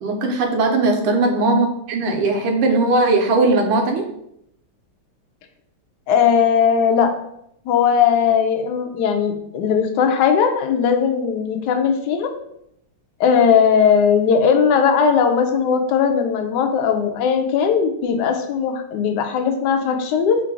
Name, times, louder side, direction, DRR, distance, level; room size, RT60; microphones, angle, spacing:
voice 1, 0.0-4.1, right 2 dB, 80° right, 3 dB, 1.6 m, -18 dB
voice 2, 6.1-7.1 7.7-12.3 13.2-20.4, left 7 dB, 90° left, 4 dB, 0.9 m, -18 dB
3.7 x 2.5 x 4.6 m, 0.75 s
omnidirectional pair, 2.4 m